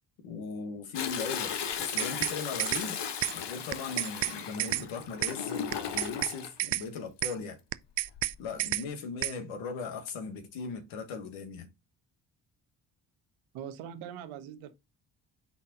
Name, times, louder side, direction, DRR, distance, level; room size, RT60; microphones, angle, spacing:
voice 1, 0.2-3.0 3.3-7.6 8.4-11.7, left 5 dB, 80° left, 1.6 m, -38 dB
Toilet flush, 0.9-6.5 8.0-8.4 8.9-9.0, left 8 dB, 60° left, 1.2 m, -36 dB
sound 1, 1.7-2.3 2.6-2.8 3.2-3.3 3.7-4.3 4.6-4.8 5.2-5.3 5.7-6.3 6.6-6.8 7.2-7.3 7.7-8.3 8.6-8.8 9.2-9.3, right 17 dB, 60° right, 0.6 m, -30 dB
voice 2, 13.5-14.7, right 9 dB, 85° right, 1.1 m, -42 dB
6.0 x 4.1 x 3.8 m
hypercardioid pair, 50°, 47 cm